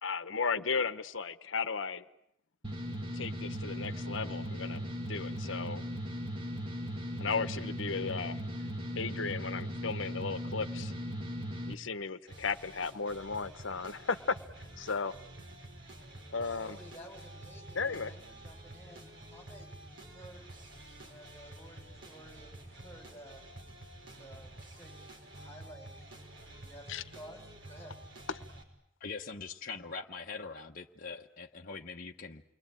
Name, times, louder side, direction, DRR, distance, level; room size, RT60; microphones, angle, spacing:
voice 1, 0.0-2.0 3.1-4.8 5.1-5.8 7.2-8.4 8.9-10.9 11.7-15.2 16.3-16.8 17.7-18.1 26.9-27.0 28.3-28.4, left 5 dB, 70° left, 12 dB, 1.1 m, -35 dB
sound 1, 2.6-11.7, equal, 25° right, 2.1 m, -38 dB
sound 2, 12.3-28.6, right 1 dB, 60° right, 5.3 m, -50 dB
voice 2, 16.6-20.4 21.0-23.4 24.2-24.9 25.4-26.0 26.4-28.0, equal, 10° left, 4 dB, 4.7 m, -53 dB
voice 3, 29.0-32.4, left 4 dB, 45° left, 0 dB, 1.0 m, -42 dB
29.0 x 22.0 x 9.0 m, 0.76 s
head